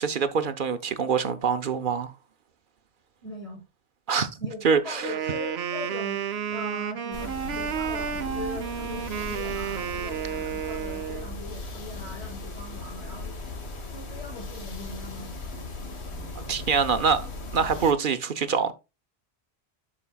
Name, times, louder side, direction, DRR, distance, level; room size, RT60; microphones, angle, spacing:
voice 1, 0.0-2.1 4.1-4.3 4.6-5.0 16.4-18.7, right 6 dB, 55° right, 0.8 m, -25 dB
voice 2, 3.2-3.6 4.4-15.7, left 2 dB, 25° left, 5.2 m, -41 dB
Wind instrument woodwind instrument, 5.0-11.3, right 8 dB, 80° right, 1.0 m, -31 dB
sound 1, 7.1-17.9, left 3 dB, 85° left, 1.7 m, -38 dB
11.5 x 4.9 x 2.3 m
omnidirectional pair, 1.1 m